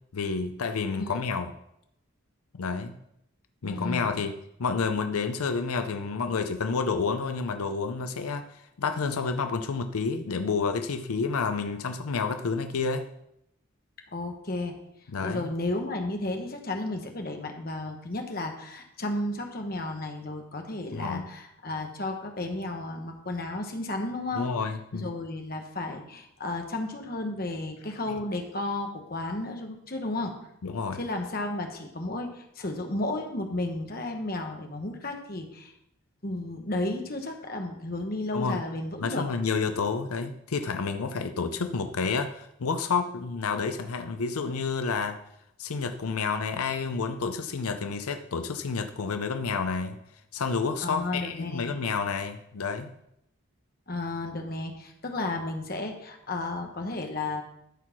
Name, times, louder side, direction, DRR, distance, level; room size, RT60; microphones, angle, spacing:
voice 1, 0.1-1.5 2.5-3.0 3.6-4.3 4.6-13.0 15.1-15.5 20.9-21.3 24.3-25.1 28.1-28.2 30.6-31.0 38.3-38.6 39.0-45.2 45.6-50.0 50.3-52.9, left 5 dB, 90° left, 8 dB, 0.6 m, -29 dB
voice 2, 3.6-4.2 14.1-14.7 15.2-24.5 24.9-30.3 31.0-35.7 36.2-39.2 50.8-51.7 53.9-57.4, left 2 dB, 45° left, 3 dB, 1.2 m, -33 dB
13.0 x 4.6 x 5.9 m, 0.78 s
head